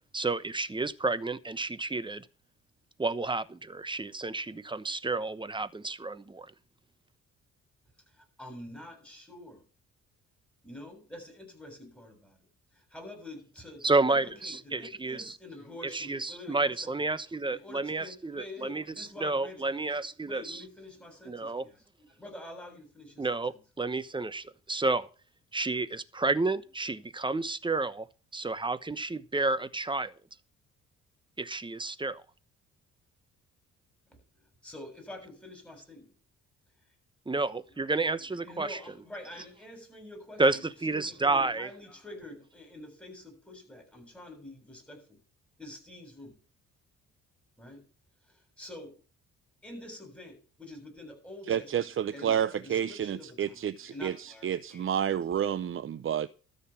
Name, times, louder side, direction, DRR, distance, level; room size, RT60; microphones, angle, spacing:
voice 1, 0.1-2.3 3.0-6.5 13.8-15.4 15.9-20.6 21.3-21.6 23.2-25.1 25.5-28.1 28.3-30.1 31.4-32.2 37.3-38.8 40.4-41.7, right 3 dB, 15° right, 1.0 m, -30 dB
voice 2, 8.1-9.6 10.6-12.4 12.7-16.9 17.5-19.8 20.2-23.6 34.6-36.1 38.3-45.2 45.6-46.4 47.6-47.8 48.3-49.0 49.6-55.2, left 1 dB, 5° left, 7.3 m, -47 dB
voice 3, 51.5-56.3, right 9 dB, 45° right, 0.7 m, -30 dB
13.5 x 6.7 x 7.1 m
cardioid pair, 90°, 30 cm